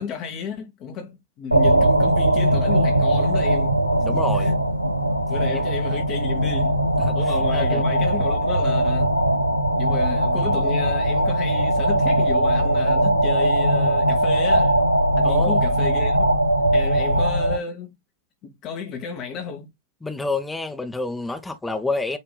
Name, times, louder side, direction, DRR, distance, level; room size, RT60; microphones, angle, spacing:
voice 1, 0.0-3.8 4.1-4.5 5.3-6.8 7.1-9.2 9.8-14.8 15.2-16.3 16.7-17.9 18.4-19.7, left 5 dB, 35° left, 1.1 m, -32 dB
Void of a Black Hole (fictional), 1.5-17.6, right 1 dB, 90° right, 0.6 m, -20 dB
voice 2, 4.0-4.6 7.0-7.1 7.5-7.8 15.2-15.6 20.0-22.2, left 3 dB, 10° left, 0.9 m, -28 dB
8.3 x 2.8 x 2.2 m
figure-of-eight pair, 90°, 0 cm